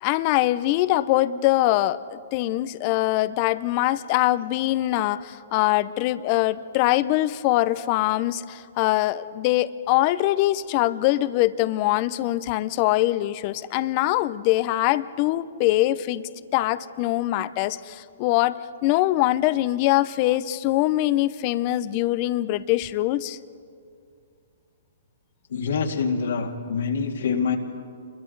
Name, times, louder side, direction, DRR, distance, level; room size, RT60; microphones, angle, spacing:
voice 1, 0.0-16.2 16.5-18.6 18.8-23.4, left 16 dB, 40° left, 16 dB, 0.6 m, -23 dB
voice 2, 25.5-27.6, left 5 dB, 70° left, 3 dB, 2.2 m, -25 dB
29.0 x 22.5 x 4.0 m, 2.3 s
hypercardioid pair, 135°, 0 cm